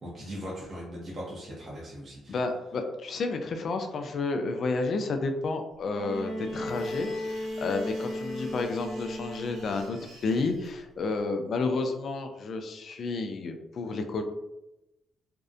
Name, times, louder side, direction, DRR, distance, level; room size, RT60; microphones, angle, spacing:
voice 1, 0.0-2.3, equal, 40° right, -5 dB, 0.7 m, -39 dB
voice 2, 2.3-14.2, left 3 dB, 55° left, 6 dB, 0.3 m, -31 dB
Bowed string instrument, 5.9-9.9 11.2-11.3, left 1 dB, 10° left, 0.7 m, -35 dB
sound 1, 6.4-10.7, right 2 dB, 85° right, 0.6 m, -53 dB
2.6 x 2.0 x 2.4 m, 0.93 s
cardioid pair, 90°, 0 cm